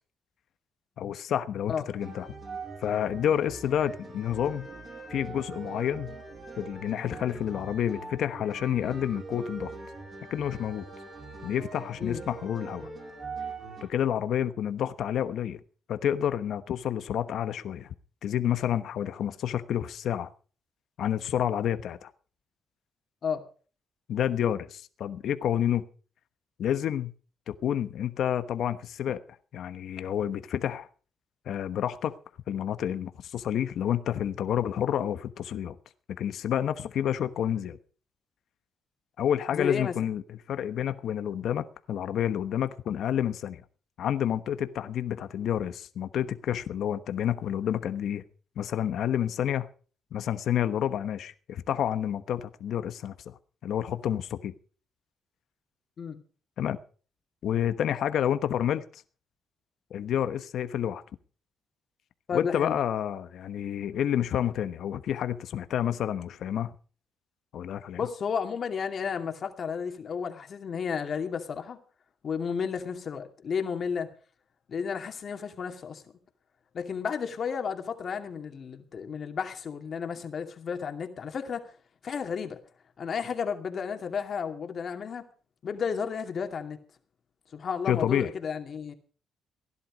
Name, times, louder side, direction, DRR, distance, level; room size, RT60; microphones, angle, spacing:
voice 1, 1.0-2.3 2.8-4.7 5.1-6.2 6.6-9.7 10.3-10.9 11.4-12.9 13.9-15.6 15.9-17.9 18.2-20.3 21.0-22.1 24.1-25.8 26.6-27.1 27.5-29.2 29.5-30.9 31.5-32.1 32.5-35.7 36.2-37.8 39.2-43.6 44.0-48.2 48.6-49.7 50.1-53.1 53.6-54.5 56.6-56.8 57.4-59.0 59.9-61.0 62.3-66.7 67.5-68.0 87.9-88.3, left 10 dB, 70° left, 1.1 m, -29 dB
sound 1, 2.0-13.8, right 3 dB, 40° right, 7.5 m, -42 dB
voice 2, 39.5-39.9 56.0-56.2 62.3-62.8 67.9-71.8 72.2-74.1 74.7-76.0 76.7-81.7 82.0-82.6 83.0-85.3 85.6-86.8 87.5-88.9, left 6 dB, 50° left, 2.4 m, -32 dB
17.0 x 11.0 x 5.2 m
cardioid pair, 90°, 0 cm